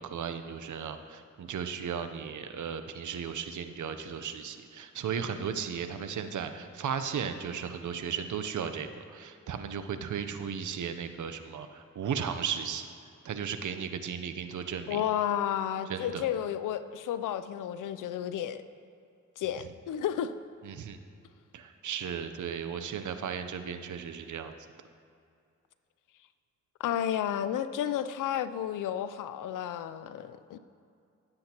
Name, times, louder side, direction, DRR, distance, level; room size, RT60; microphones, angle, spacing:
voice 1, 0.0-12.9 13.2-15.0 15.9-16.2 20.6-21.0 21.5-24.6, right 7 dB, 75° right, 9 dB, 0.7 m, -35 dB
voice 2, 14.9-18.6 19.4-20.3 26.8-30.6, left 10 dB, 90° left, 13 dB, 0.5 m, -32 dB
16.0 x 7.8 x 2.9 m, 2.5 s
cardioid pair, 55°, 31 cm